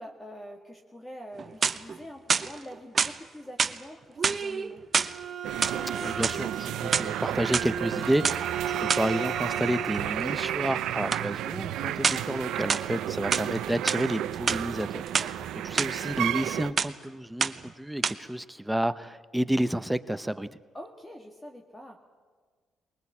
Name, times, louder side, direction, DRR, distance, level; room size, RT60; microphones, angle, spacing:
voice 1, 0.0-4.8 11.7-11.9 15.2-15.5 20.7-22.0, equal, 15° left, 3 dB, 2.1 m, -45 dB
sound 1, 1.3-2.0 2.3-3.2 3.6-3.8 4.2-5.2 5.5-6.4 6.8-7.7 8.2-8.4 8.9-9.1 11.1-11.3 12.0-12.3 12.7-13.5 13.9-14.0 14.3-15.3 15.8-15.9 16.3-16.5 16.8-17.0 17.4-17.7 18.0-18.1, right 5 dB, 40° right, 0.9 m, -27 dB
Bowed string instrument, 4.8-10.3, right 7 dB, 60° right, 2.4 m, -36 dB
sound 2, 5.4-16.7, right 12 dB, 85° right, 0.7 m, -32 dB
voice 2, 6.0-15.4 15.6-20.5, right 1 dB, 5° right, 13 dB, 0.8 m, -30 dB
21.0 x 19.5 x 8.6 m, 1.5 s
cardioid pair, 90°, 0 cm